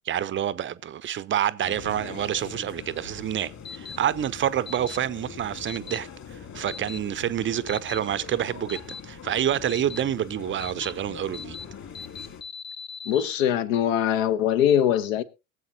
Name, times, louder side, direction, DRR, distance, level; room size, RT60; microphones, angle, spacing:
voice 1, 0.0-11.6, right 10 dB, 25° right, 0.7 m, -28 dB
sound 1, 1.6-12.4, left 7 dB, 40° left, 2.9 m, -42 dB
sound 2, 3.7-4.0 4.7-5.0 5.7-6.0 6.7-7.0 7.7-8.0 8.7-9.0 9.7-10.0 10.6-10.9 11.3-11.7 12.0-13.4, left 5 dB, 25° left, 0.9 m, -38 dB
voice 2, 13.1-15.2, left 10 dB, 65° left, 1.2 m, -22 dB
22.5 x 7.9 x 2.8 m
figure-of-eight pair, 70°, 43 cm